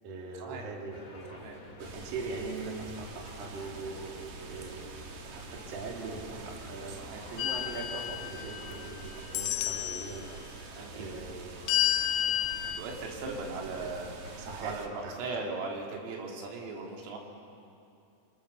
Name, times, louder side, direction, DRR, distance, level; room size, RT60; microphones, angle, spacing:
voice 1, 0.0-1.4 1.8-4.8 5.3-10.4 10.9-11.7 13.8-13.9 14.4-15.5, right 3 dB, 50° right, -1 dB, 4.3 m, -41 dB
sound 1, 0.9-14.6, left 3 dB, 45° left, 3.0 m, -51 dB
sound 2, 1.8-14.9, right 5 dB, 65° right, 2.0 m, -46 dB
sound 3, 7.4-8.9 9.3-10.2 11.7-12.8, left 12 dB, 80° left, 2.9 m, -30 dB
voice 2, 10.7-11.1 12.8-14.1 14.6-17.2, right 3 dB, 85° right, 0 dB, 5.2 m, -38 dB
28.0 x 26.0 x 6.9 m, 2.6 s
omnidirectional pair, 5.8 m